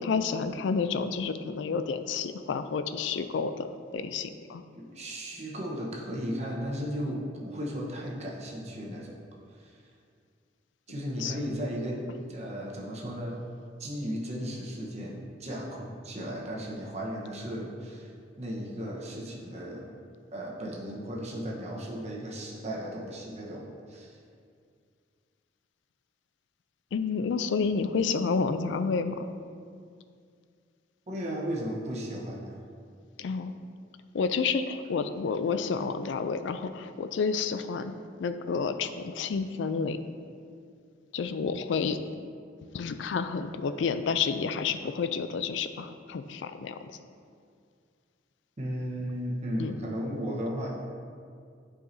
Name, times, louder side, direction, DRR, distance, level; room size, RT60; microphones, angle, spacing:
voice 1, 0.0-3.7 3.9-4.6 11.2-11.3 26.9-29.3 33.2-33.5 34.1-37.9 38.2-40.0 41.1-42.0 42.7-46.9 49.6-49.7, left 5 dB, 70° left, 10 dB, 0.4 m, -30 dB
voice 2, 4.7-9.1 9.6-9.7 10.9-12.0 12.3-13.4 13.8-18.1 18.4-19.9 20.3-24.2 31.1-32.6 48.6-50.7, equal, 40° right, -3 dB, 1.0 m, -35 dB
8.9 x 4.9 x 2.7 m, 2.2 s
head